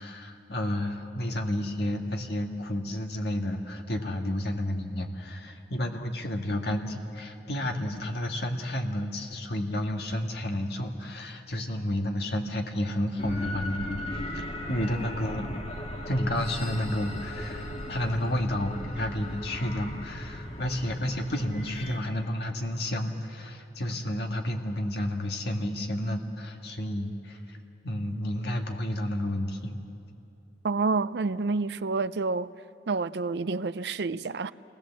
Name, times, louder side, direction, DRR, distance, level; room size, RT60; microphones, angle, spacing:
voice 1, 0.0-15.5 16.1-27.6 27.8-29.8, left 1 dB, 65° left, 1.8 m, -31 dB
sound 1, 13.2-22.0, left 1 dB, 35° left, 1.9 m, -38 dB
voice 2, 30.6-32.5 32.9-34.5, right 4 dB, 65° right, 0.5 m, -28 dB
28.0 x 20.0 x 7.4 m
head